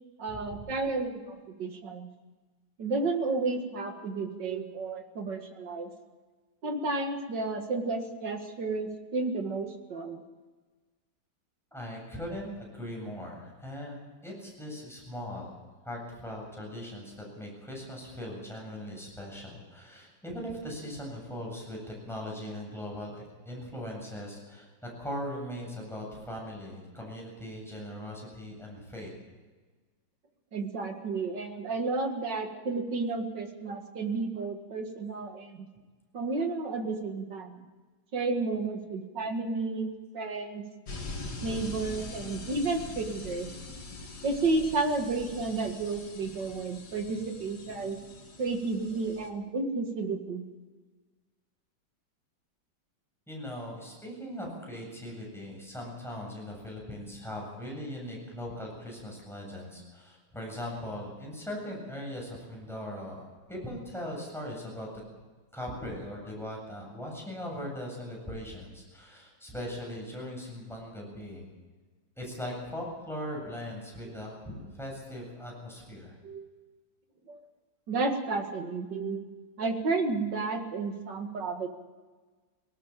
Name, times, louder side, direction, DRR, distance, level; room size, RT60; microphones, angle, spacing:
voice 1, 0.2-2.1 2.8-5.9 6.6-10.2 30.5-35.7 36.1-37.7 38.1-39.9 40.1-40.6 41.4-43.5 44.2-48.0 48.4-50.5 76.2-76.5 77.3-77.4 77.9-79.2 79.6-81.7, right 3 dB, 65° right, 5 dB, 2.6 m, -32 dB
voice 2, 11.7-15.5 15.8-24.7 25.0-29.1 53.3-64.9 65.5-71.5 72.2-76.1, left 1 dB, ahead, -2 dB, 7.8 m, -40 dB
sound 1, 40.9-49.3, left 2 dB, 60° left, 2.7 m, -43 dB
19.0 x 18.5 x 7.5 m, 1.3 s
omnidirectional pair, 2.0 m